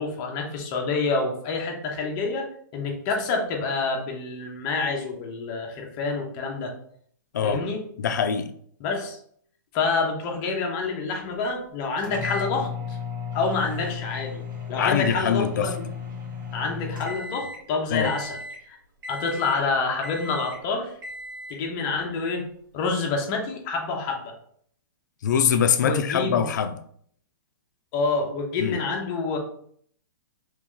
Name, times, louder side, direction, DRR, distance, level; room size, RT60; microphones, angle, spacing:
voice 1, 0.0-2.5 2.7-6.7 7.4-7.8 8.8-9.2 9.7-13.0 13.3-14.4 14.7-15.8 16.5-18.8 19.1-20.9 21.5-22.5 22.7-24.4 25.8-26.4 27.9-29.4, left 4 dB, 25° left, 0.8 m, -27 dB
voice 2, 8.0-8.5 14.8-15.7 17.9-18.1 25.2-26.7 28.6-28.8, left 7 dB, 65° left, 0.5 m, -23 dB
sound 1, 12.0-17.7 18.0-18.6 19.0-19.7 20.0-20.6 21.0-21.6, left 5 dB, 85° right, 1.2 m, -35 dB
3.0 x 2.9 x 3.7 m
hypercardioid pair, 165°, 11 cm